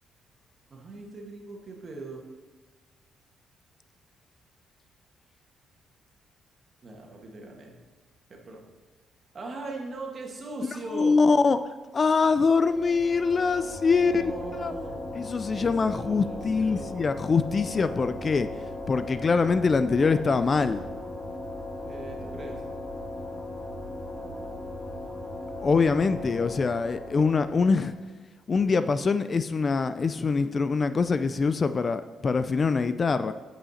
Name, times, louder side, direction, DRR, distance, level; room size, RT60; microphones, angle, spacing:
voice 1, 0.7-2.3 6.8-7.8 8.3-8.6 9.3-11.2 13.9-15.0 15.5-17.0 21.8-22.6, right 3 dB, 45° right, 1 dB, 1.6 m, -40 dB
voice 2, 10.9-11.6 11.9-14.3 14.6-14.7 15.2-18.5 18.9-20.8 25.6-27.9 28.5-33.3, left 4 dB, 35° left, 12 dB, 0.3 m, -24 dB
sound 1, 12.2-28.1, left 1 dB, 10° left, 1.6 m, -38 dB
8.5 x 5.7 x 4.2 m, 1.3 s
cardioid pair, 90°, 0 cm